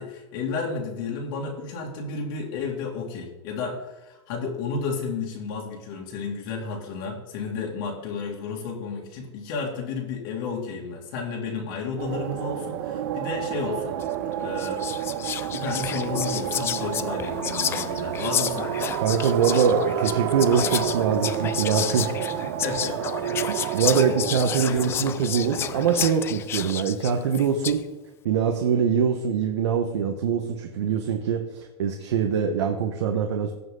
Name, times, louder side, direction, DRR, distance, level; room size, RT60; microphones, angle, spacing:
voice 1, 0.0-14.0 14.4-14.8 15.5-18.7 21.9-22.1 22.6-23.0 24.6-24.9, left 4 dB, 55° left, -1 dB, 2.6 m, -32 dB
sound 1, 12.0-26.1, right 10 dB, 60° right, 0.8 m, -30 dB
Whispering, 14.0-14.2 14.6-27.9, left 10 dB, 15° left, 0.3 m, -31 dB
voice 2, 19.0-22.1 23.4-27.8 28.2-33.5, right 6 dB, 90° right, 4 dB, 1.3 m, -23 dB
17.0 x 6.0 x 3.9 m, 1.0 s
supercardioid pair, 155°, 14 cm